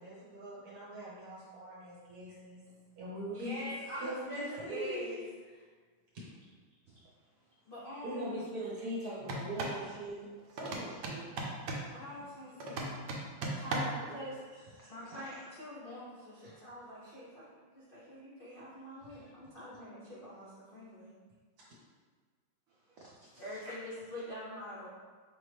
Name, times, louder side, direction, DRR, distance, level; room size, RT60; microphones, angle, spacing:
voice 1, 0.0-2.6 3.0-3.7 4.0-5.2 8.0-11.4 13.9-14.4 16.4-16.5 19.1-19.3 19.6-19.8, right 1 dB, 50° right, -8 dB, 1.7 m, -42 dB
voice 2, 3.3-5.2 7.7-8.4 11.9-13.0 13.5-14.4 14.8-21.1 23.4-24.9, equal, 75° left, -8 dB, 0.5 m, -45 dB
sound 1, 9.2-9.8 10.6-11.9 12.6-14.1, right 2 dB, 70° right, 1.1 m, -37 dB
voice 3, 14.5-15.4 22.7-23.8, right 1 dB, 85° right, -3 dB, 0.7 m, -54 dB
5.0 x 2.9 x 3.3 m, 1.5 s
omnidirectional pair, 2.1 m